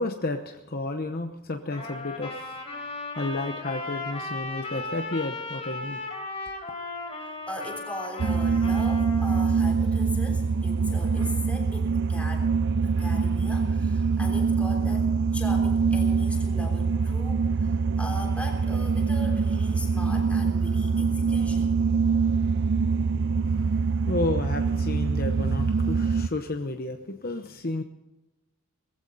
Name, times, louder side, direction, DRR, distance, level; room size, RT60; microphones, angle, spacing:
voice 1, 0.0-2.6 2.9-6.0 23.5-23.7 24.1-27.8, left 2 dB, 40° left, 5 dB, 0.9 m, -31 dB
Trumpet, 1.7-9.5, left 2 dB, 25° left, 4.1 m, -36 dB
Wind, 6.4-18.8 19.1-19.4, right 1 dB, 85° right, 7.5 m, -53 dB
voice 2, 7.2-12.5 13.0-21.7, left 1 dB, 5° left, 1 dB, 3.4 m, -39 dB
sound 1, 8.2-26.3, right 5 dB, 50° right, 0.4 m, -24 dB
20.5 x 15.0 x 4.1 m, 0.99 s
head